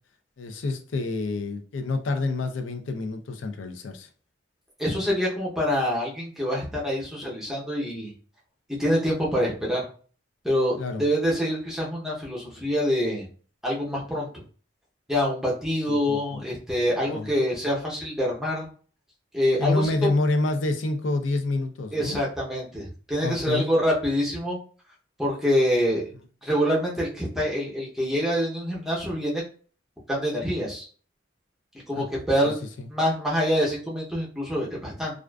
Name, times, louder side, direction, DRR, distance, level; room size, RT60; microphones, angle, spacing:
voice 1, 0.4-4.1 10.8-11.0 15.9-16.4 17.0-17.3 19.6-22.2 23.2-23.7 32.0-32.1 32.4-32.5 32.8-32.9, left 2 dB, 90° left, 6 dB, 0.5 m, -28 dB
voice 2, 4.8-8.1 8.8-9.9 10.4-13.3 13.6-14.3 15.1-18.7 19.3-20.1 21.9-24.6 25.2-26.0 26.4-29.4 30.1-30.9 31.9-32.6 32.9-35.2, equal, ahead, -5 dB, 0.6 m, -26 dB
2.4 x 2.3 x 2.2 m, 0.41 s
head